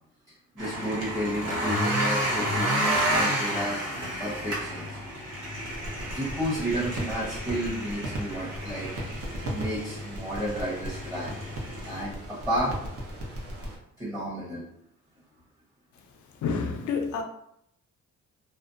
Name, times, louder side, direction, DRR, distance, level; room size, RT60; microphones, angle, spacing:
voice 1, 0.5-3.8 4.2-4.8 6.1-8.9 9.4-11.3 11.8-12.8 14.0-14.7, equal, 10° right, 0.9 m, -31 dB
sound 1, 0.6-12.0, equal, 85° right, 0.9 m, -31 dB
sound 2, 5.6-13.8, equal, 50° right, 0.7 m, -37 dB
voice 2, 16.4-17.2, left 5 dB, 70° left, 0.5 m, -28 dB
2.5 x 2.1 x 2.5 m
cardioid pair, 90°, 30 cm